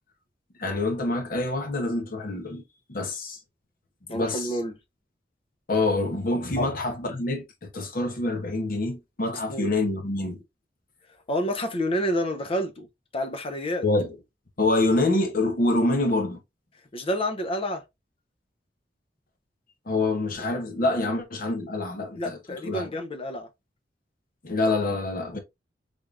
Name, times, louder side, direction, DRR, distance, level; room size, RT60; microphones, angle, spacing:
voice 1, 0.6-2.6 2.9-3.4 4.1-4.5 5.7-10.4 13.8-14.2 14.6-16.4 19.9-22.4 22.6-22.9 24.4-25.4, left 2 dB, 55° left, 0.9 m, -26 dB
voice 2, 4.1-4.7 6.6-6.7 9.5-9.7 11.3-12.9 13.1-13.9 16.9-17.8 22.2-23.5, equal, 30° left, 0.5 m, -29 dB
3.5 x 3.4 x 2.4 m
head